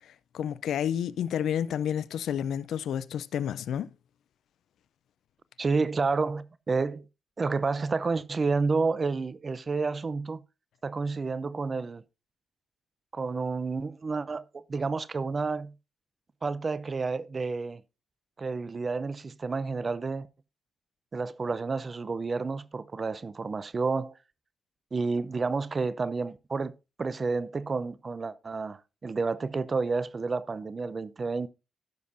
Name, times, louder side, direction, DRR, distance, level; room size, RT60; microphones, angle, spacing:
voice 1, 0.3-3.9, left 9 dB, 75° left, 0.4 m, -30 dB
voice 2, 5.6-7.0 7.4-10.4 10.8-12.0 13.1-15.7 16.4-17.8 18.4-20.3 21.1-24.2 24.9-26.7 27.0-31.5, right 4 dB, 40° right, 0.6 m, -30 dB
14.0 x 7.2 x 2.7 m
hypercardioid pair, 45°, 0 cm